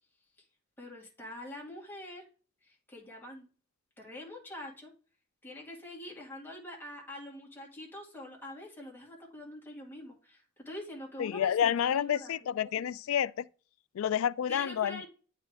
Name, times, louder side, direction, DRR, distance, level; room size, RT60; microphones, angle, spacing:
voice 1, 0.8-2.3 2.6-3.5 4.0-4.9 5.4-12.4 12.6-12.7 14.5-15.1, left 1 dB, 10° left, 1.9 m, -45 dB
voice 2, 11.2-13.5 13.9-15.0, left 9 dB, 75° left, 0.3 m, -29 dB
8.8 x 3.7 x 3.3 m
head